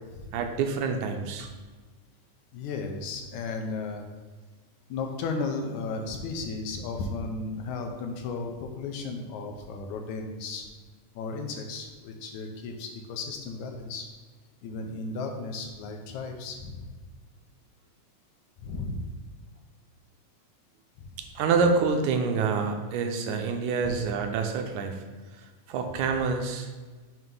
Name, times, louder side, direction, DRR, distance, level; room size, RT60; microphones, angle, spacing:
voice 1, 0.3-1.5 21.4-25.0 25.7-26.7, right 5 dB, 80° right, 4 dB, 2.0 m, -27 dB
voice 2, 2.5-4.0 4.9-10.7 11.2-14.1 14.6-16.9 18.6-19.1 21.0-21.2 23.9-24.0, left 3 dB, 80° left, 3 dB, 2.0 m, -34 dB
7.7 x 2.9 x 5.4 m, 1.3 s
omnidirectional pair, 3.5 m